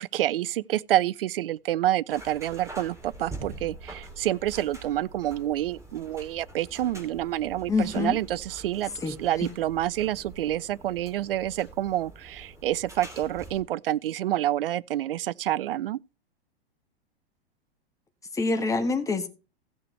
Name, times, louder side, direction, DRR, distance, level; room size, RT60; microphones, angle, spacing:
voice 1, 0.0-16.0, right 13 dB, 65° right, 0.4 m, -28 dB
sound 1, 2.1-13.6, right 2 dB, 10° right, 2.8 m, -45 dB
voice 2, 7.7-8.2 9.0-9.5 18.3-19.3, left 3 dB, 10° left, 1.5 m, -26 dB
16.0 x 6.7 x 3.3 m
figure-of-eight pair, 95°, 31 cm